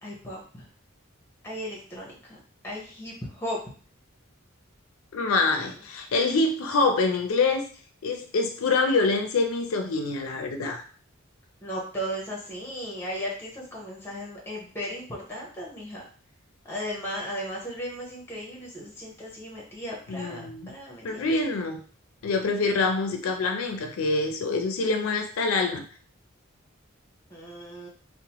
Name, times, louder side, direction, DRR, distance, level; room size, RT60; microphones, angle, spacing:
voice 1, 0.0-0.7 1.4-3.6 11.6-16.0 16.7-21.3 22.4-22.7 27.3-27.9, equal, 10° left, -3 dB, 0.8 m, -36 dB
voice 2, 5.1-7.7 8.0-10.8 20.1-20.7 21.0-21.8 22.2-25.8, left 3 dB, 85° left, 5 dB, 0.4 m, -25 dB
2.8 x 2.1 x 2.9 m, 0.42 s
head